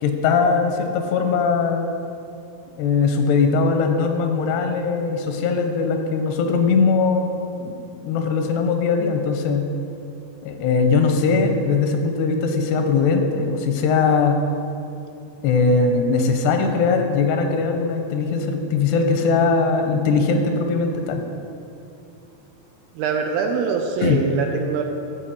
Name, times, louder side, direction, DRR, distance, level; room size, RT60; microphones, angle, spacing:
voice 1, 0.0-1.9 2.8-9.7 10.4-14.4 15.4-21.2 24.0-24.2, left 4 dB, 85° left, 5 dB, 3.0 m, -20 dB
voice 2, 22.9-24.8, right 5 dB, 80° right, 3 dB, 2.3 m, -23 dB
12.5 x 4.9 x 7.1 m, 2.7 s
omnidirectional pair, 4.6 m